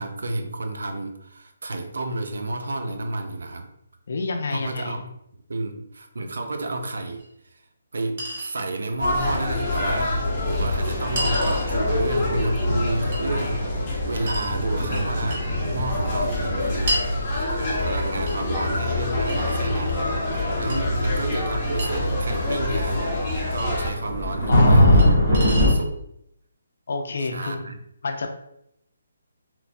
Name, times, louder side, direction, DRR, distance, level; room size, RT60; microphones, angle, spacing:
voice 1, 0.0-3.7 4.5-5.0 5.5-7.2 7.5-7.6 7.9-13.6 14.1-17.0 17.6-23.0 23.5-25.0 25.3-26.0 27.2-27.8, right 2 dB, 80° right, 6 dB, 0.4 m, -31 dB
voice 2, 4.1-5.0 20.3-21.2 24.5-25.7 26.9-27.7 28.0-28.3, left 3 dB, 55° left, 3 dB, 0.4 m, -30 dB
Chink clink, 7.2-7.3 8.2-8.5 9.7-9.8 11.2-11.7 13.1-13.2 14.3-14.5 15.3-15.5 16.9-17.1 18.3-18.4 19.3-20.0 20.7-20.8 21.8-21.9 23.6-23.7 25.0-25.1 25.3-25.8, right 1 dB, 35° right, 0.8 m, -30 dB
sound 1, 9.0-23.9, left 1 dB, 20° left, 0.8 m, -26 dB
sound 2, 9.2-25.7, left 1 dB, 15° right, 1.0 m, -25 dB
3.0 x 2.1 x 2.5 m, 0.76 s
hypercardioid pair, 170°, 0 cm